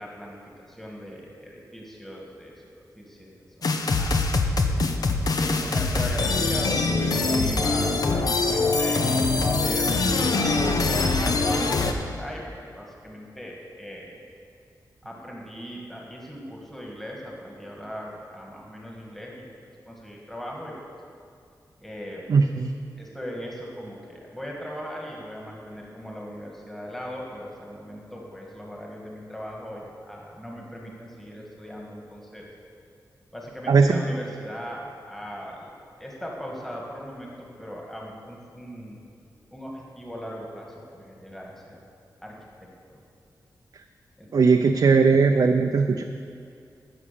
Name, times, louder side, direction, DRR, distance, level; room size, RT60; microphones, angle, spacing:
voice 1, 0.0-2.7 3.0-4.3 5.4-14.2 15.0-19.5 19.9-21.0 21.8-22.3 23.0-32.5 33.3-39.0 39.5-41.8 42.2-43.0 44.2-44.3, equal, 5° left, -2 dB, 1.8 m, -39 dB
sound 1, 3.6-11.9, left 3 dB, 60° left, 0.9 m, -23 dB
voice 2, 22.3-22.7 33.7-33.9 44.3-46.0, right 4 dB, 60° right, 4 dB, 0.5 m, -18 dB
15.0 x 6.2 x 6.9 m, 2.5 s
wide cardioid pair, 135°, 7 cm